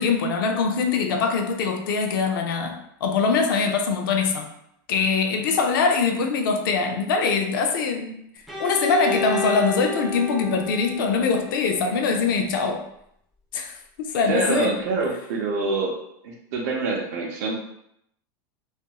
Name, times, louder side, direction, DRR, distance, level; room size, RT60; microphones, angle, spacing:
voice 1, 0.0-4.5 4.9-8.2 8.6-12.8 13.5-13.7 14.0-14.7, left 5 dB, 90° left, 3 dB, 0.5 m, -23 dB
Bowed string instrument, 8.5-12.3, left 1 dB, ahead, 0.3 m, -31 dB
voice 2, 14.3-16.0 16.2-17.5, right 3 dB, 50° right, -1 dB, 0.5 m, -25 dB
2.9 x 2.4 x 2.2 m, 0.74 s
supercardioid pair, 175°, 11 cm